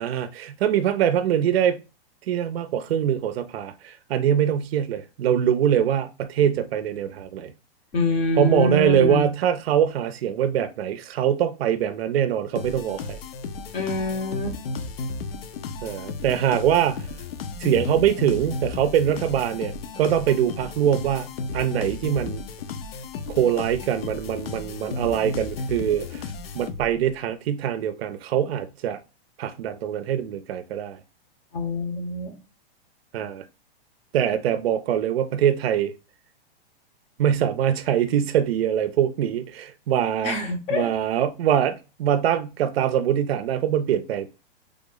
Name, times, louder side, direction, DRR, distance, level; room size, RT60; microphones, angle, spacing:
voice 1, 0.0-1.8 2.3-7.5 8.4-13.2 15.8-17.1 17.6-22.4 23.3-26.3 26.5-29.0 29.4-31.0 33.1-33.5 34.1-35.9 37.2-40.4 40.7-44.3, right 10 dB, 75° right, 0.5 m, -23 dB
voice 2, 7.9-9.3 13.7-14.6 31.5-32.4 40.2-40.9, left 2 dB, 20° left, 0.6 m, -25 dB
sound 1, 12.6-27.1, left 4 dB, 70° left, 0.6 m, -34 dB
3.4 x 2.0 x 3.6 m
hypercardioid pair, 155°, 30 cm